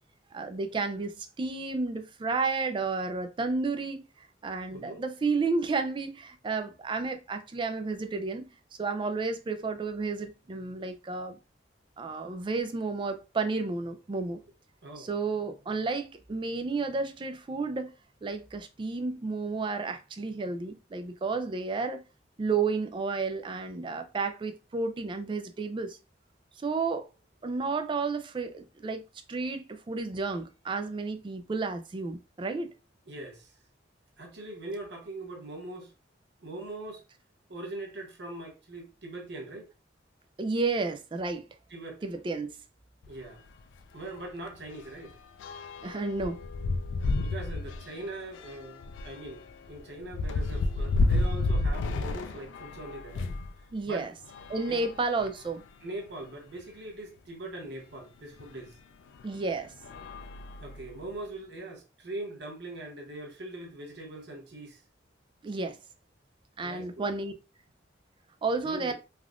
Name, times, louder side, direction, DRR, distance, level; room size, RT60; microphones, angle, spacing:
voice 1, 0.3-4.0 4.4-8.5 8.8-11.4 12.0-14.4 15.0-17.9 18.2-22.0 22.4-26.0 26.6-27.1 27.4-29.0 29.3-32.7 40.4-41.5 42.0-42.5 45.8-46.4 53.7-54.1 54.5-55.6 59.2-59.7 65.4-65.8 66.6-67.3 68.4-68.9, right 4 dB, 25° right, 0.3 m, -31 dB
voice 2, 4.7-5.0 14.8-15.1 33.1-33.5 34.2-35.9 36.4-37.0 37.5-39.7 41.7-42.0 43.1-43.5 43.9-45.2 47.1-53.3 53.8-54.1 54.7-54.9 55.8-58.8 60.6-64.8 66.6-67.0 68.6-68.9, right 2 dB, 60° right, 0.8 m, -41 dB
sound 1, 43.0-43.2 43.6-43.7 44.0-53.5 54.2-55.6 56.3-56.4 56.6-56.7 58.4-58.5 59.1-59.4 59.8-61.1, left 2 dB, 80° left, 0.3 m, -32 dB
3.4 x 2.4 x 2.4 m
head